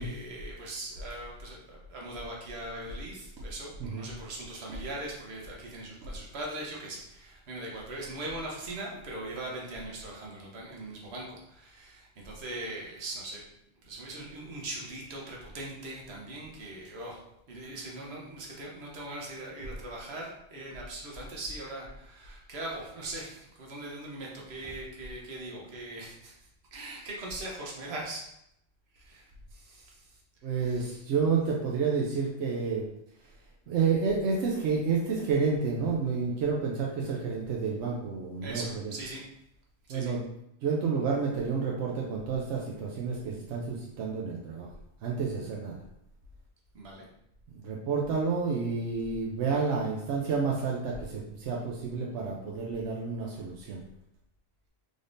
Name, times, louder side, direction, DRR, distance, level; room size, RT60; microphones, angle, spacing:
voice 1, 0.0-13.4 13.8-17.2 17.5-26.3 26.7-28.3 28.9-29.3 29.5-30.2 30.6-31.0 38.4-39.3 39.9-40.1 46.7-47.1, right 2 dB, 70° right, -2 dB, 1.2 m, -40 dB
voice 2, 30.4-32.9 33.7-38.9 39.9-40.3 40.6-44.7 45.0-45.8 47.5-53.8, right 5 dB, 85° right, -2 dB, 0.9 m, -30 dB
3.9 x 3.4 x 2.6 m, 0.79 s
omnidirectional pair, 1.1 m